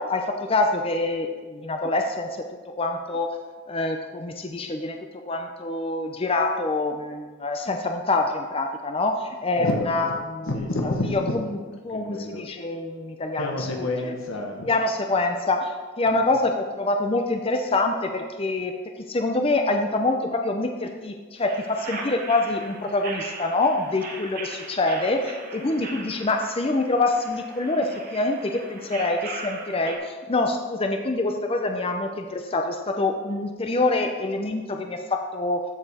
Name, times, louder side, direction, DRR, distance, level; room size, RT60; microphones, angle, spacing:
voice 1, 0.0-3.3 3.7-5.0 5.3-10.5 10.8-11.2 11.8-13.4 14.0-14.1 14.6-18.7 19.1-35.6, left 2 dB, 25° left, 4 dB, 0.5 m, -25 dB
voice 2, 9.5-12.4 13.4-14.7 16.0-16.4, left 2 dB, 70° left, 1 dB, 1.2 m, -30 dB
sound 1, 21.4-30.0, right 3 dB, 40° right, 1.1 m, -39 dB
13.5 x 5.0 x 4.2 m, 1.4 s
head